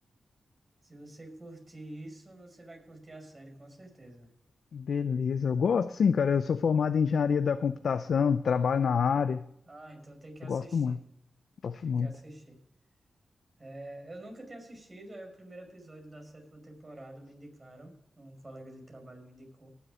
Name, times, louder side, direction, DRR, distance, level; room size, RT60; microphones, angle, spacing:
voice 1, 0.8-4.3 9.7-11.1 11.8-12.6 13.6-19.7, right 1 dB, 30° right, 4 dB, 5.1 m, -48 dB
voice 2, 4.7-9.4 10.5-11.0 11.6-12.1, left 6 dB, 80° left, 10 dB, 0.6 m, -26 dB
19.0 x 7.2 x 5.0 m, 0.76 s
cardioid pair, 75°, 0 cm